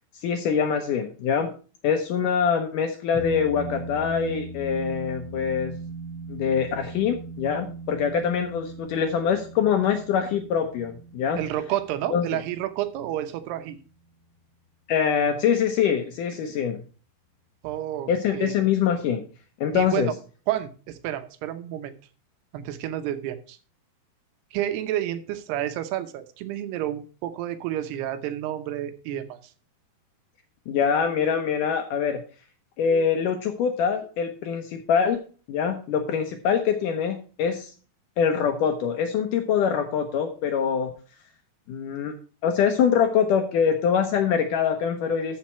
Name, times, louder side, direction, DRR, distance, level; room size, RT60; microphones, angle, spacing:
voice 1, 0.2-1.5 1.8-5.8 6.3-11.4 12.1-12.2 14.9-16.8 18.1-19.2 19.6-20.1 30.7-32.2 32.8-35.2 35.5-37.7 38.2-40.9 41.7-42.1 42.4-45.4, left 7 dB, 75° left, 6 dB, 2.0 m, -24 dB
sound 1, 3.1-13.8, right 2 dB, 35° left, 2.7 m, -39 dB
voice 2, 11.4-13.8 17.6-18.6 19.7-20.1 20.5-21.9 22.5-23.6 24.5-29.4, right 12 dB, 80° right, 10 dB, 2.9 m, -30 dB
13.0 x 5.8 x 4.3 m, 0.37 s
omnidirectional pair, 4.7 m